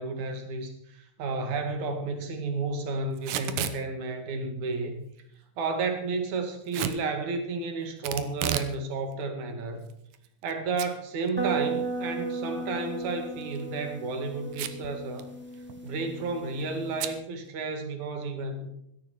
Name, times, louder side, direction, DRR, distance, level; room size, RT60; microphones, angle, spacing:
voice 1, 0.0-5.0 5.6-9.9 10.4-15.3 15.8-18.7, right 3 dB, 65° right, 6 dB, 3.5 m, -32 dB
Packing tape duct tape / Tearing, 3.2-3.8 6.7-7.0 8.0-8.7 9.1-9.2 9.9-10.5 10.8-10.9 11.3-11.4 13.3-13.6 14.5-14.9 15.2-15.3 15.5-15.9 17.0-17.2, right 10 dB, 80° right, 2.6 m, -31 dB
sound 1, 11.4-17.1, right 3 dB, 5° right, 2.1 m, -35 dB
16.0 x 13.0 x 4.6 m, 0.76 s
omnidirectional pair, 3.6 m